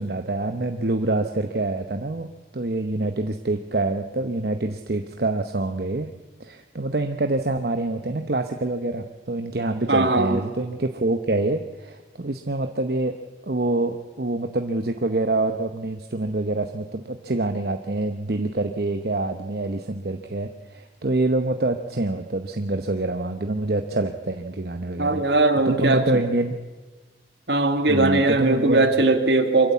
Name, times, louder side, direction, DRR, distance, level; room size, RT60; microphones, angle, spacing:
voice 1, 0.0-2.3 2.5-6.1 6.4-13.2 13.4-25.2 25.6-26.6 27.9-28.9, right 2 dB, 60° right, 6 dB, 0.9 m, -26 dB
voice 2, 9.9-10.4 25.0-26.1 27.5-29.7, right 2 dB, 75° right, 6 dB, 2.2 m, -19 dB
24.0 x 14.0 x 8.4 m, 1.3 s
head